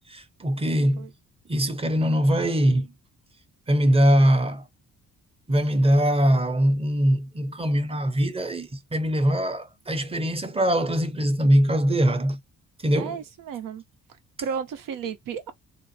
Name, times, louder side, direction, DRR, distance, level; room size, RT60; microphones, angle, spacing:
voice 1, 0.1-1.1 1.5-2.9 3.7-4.6 5.5-12.4 12.8-13.2, equal, 20° right, 0.7 m, -22 dB
voice 2, 12.9-13.8 14.4-15.5, right 7 dB, 90° right, 0.8 m, -33 dB
3.8 x 2.1 x 2.6 m
cardioid pair, 95°, 32 cm